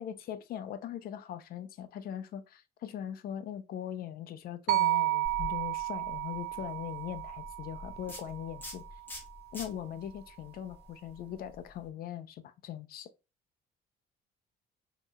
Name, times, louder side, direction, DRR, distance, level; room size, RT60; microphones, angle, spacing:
voice 1, 0.0-8.8 9.5-13.1, left 10 dB, 65° left, 0.7 m, -40 dB
sound 1, 4.7-8.9, right 15 dB, 75° right, 0.5 m, -32 dB
sound 2, 5.2-11.9, left 1 dB, 10° left, 2.0 m, -47 dB
5.2 x 3.0 x 2.3 m
cardioid pair, 110°, 17 cm